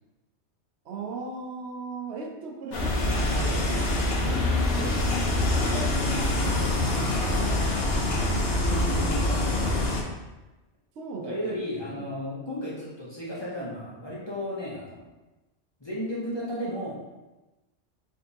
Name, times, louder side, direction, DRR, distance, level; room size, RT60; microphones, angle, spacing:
voice 1, 0.8-3.7 4.2-5.1 5.5-7.5 11.0-11.6 11.9-12.0, right 4 dB, 75° right, 1 dB, 0.9 m, -37 dB
sound 1, 2.7-10.0, left 2 dB, 60° left, 0.8 m, -25 dB
voice 2, 8.5-9.8 11.2-15.0 15.8-17.0, equal, 25° left, -7 dB, 0.7 m, -34 dB
5.0 x 2.7 x 2.7 m, 1.1 s
omnidirectional pair, 1.2 m